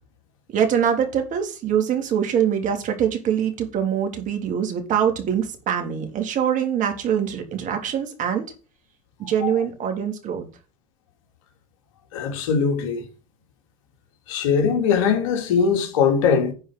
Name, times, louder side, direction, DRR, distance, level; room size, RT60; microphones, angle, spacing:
voice 1, 0.5-8.5 9.2-10.4, right 8 dB, 50° right, 3.3 m, -23 dB
voice 2, 12.1-13.0 14.3-16.5, left 6 dB, 85° left, 2.9 m, -21 dB
10.0 x 4.9 x 7.3 m
supercardioid pair, 95°, 16 cm